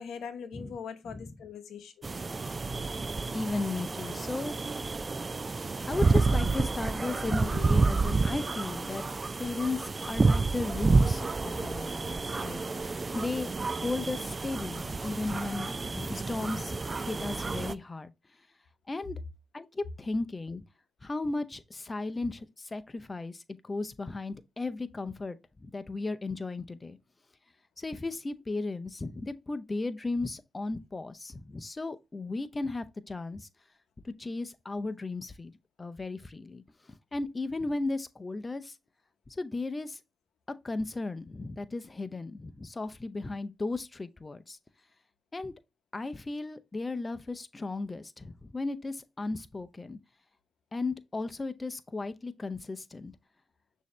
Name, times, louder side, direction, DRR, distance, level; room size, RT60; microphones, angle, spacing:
voice 1, 0.0-2.1, left 6 dB, 80° left, 0.7 m, -42 dB
sound 1, 2.0-17.7, right 3 dB, 35° right, 0.3 m, -29 dB
voice 2, 3.3-5.0 5.9-9.0 9.4-18.1 18.9-19.2 19.5-20.6 21.0-27.0 27.8-33.5 34.0-35.5 35.8-36.6 37.1-38.8 39.3-40.0 40.6-44.6 45.3-45.5 45.9-50.0 50.7-53.2, left 3 dB, 30° left, 0.5 m, -35 dB
6.3 x 2.7 x 3.1 m
cardioid pair, 60°, 0 cm